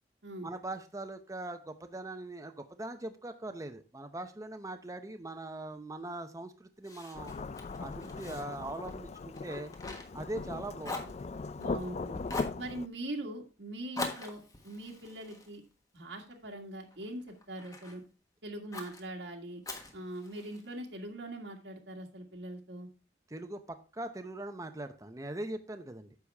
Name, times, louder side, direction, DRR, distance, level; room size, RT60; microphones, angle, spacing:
voice 1, 0.4-7.3 7.8-9.7 10.1-11.2 23.3-26.1, right 2 dB, 20° right, 7 dB, 0.7 m, -41 dB
Fire, 6.8-10.5 10.8-11.9 12.3-12.6 13.9-16.4 16.9-18.0 18.7-19.0 19.6-20.7, left 2 dB, 20° left, 1.4 m, -43 dB
Thunderstorm / Rain, 7.1-12.9, left 3 dB, 35° left, 0.3 m, -39 dB
voice 2, 11.6-12.2 12.6-15.6 15.9-18.0 18.4-19.6 19.9-22.9, right 1 dB, 85° right, 1 dB, 1.8 m, -42 dB
9.7 x 6.9 x 3.4 m, 0.32 s
head